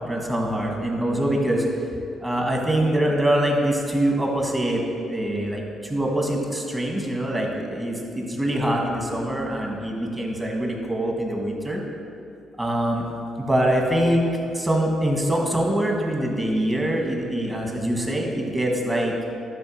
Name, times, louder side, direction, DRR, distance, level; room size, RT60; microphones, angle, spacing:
voice 1, 0.1-1.6 2.2-4.8 5.1-11.8 12.6-13.0 13.5-14.3 14.6-19.1, right 1 dB, 15° right, 0 dB, 1.8 m, -24 dB
11.0 x 4.6 x 6.5 m, 2.5 s
cardioid pair, 90°, 0 cm